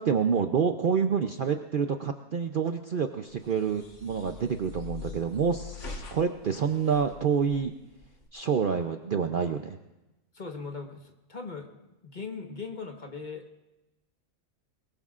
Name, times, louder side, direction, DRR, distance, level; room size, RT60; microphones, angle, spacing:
voice 1, 0.0-7.7 8.3-9.8, right 6 dB, 50° right, 6 dB, 0.7 m, -27 dB
sound 1, 3.3-8.3, left 4 dB, 60° left, 1.7 m, -44 dB
voice 2, 10.3-11.7 12.0-13.4, left 4 dB, 35° left, 3 dB, 1.4 m, -39 dB
22.5 x 21.5 x 2.5 m, 1.0 s
omnidirectional pair, 1.4 m